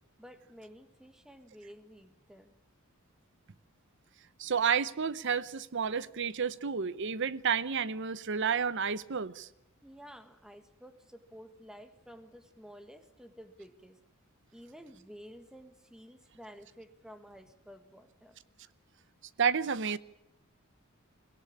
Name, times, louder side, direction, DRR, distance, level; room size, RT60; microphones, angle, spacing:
voice 1, 0.2-2.5 9.8-14.0 14.5-18.4, equal, 5° right, 1.5 m, -52 dB
voice 2, 4.4-9.5 19.4-20.0, right 6 dB, 55° right, 0.8 m, -30 dB
22.0 x 18.0 x 8.6 m
head